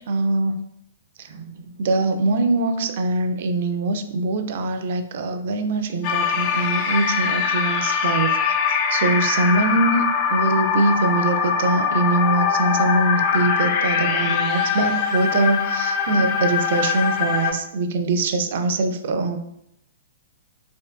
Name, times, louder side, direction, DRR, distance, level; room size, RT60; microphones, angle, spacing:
voice 1, 0.1-0.5 1.2-8.6 8.9-10.0 10.3-19.4, right 2 dB, 50° right, 7 dB, 0.3 m, -23 dB
sound 1, 6.0-17.5, left 6 dB, 35° left, 0.4 m, -22 dB
4.2 x 2.4 x 2.2 m, 0.76 s
figure-of-eight pair, 110°, 0 cm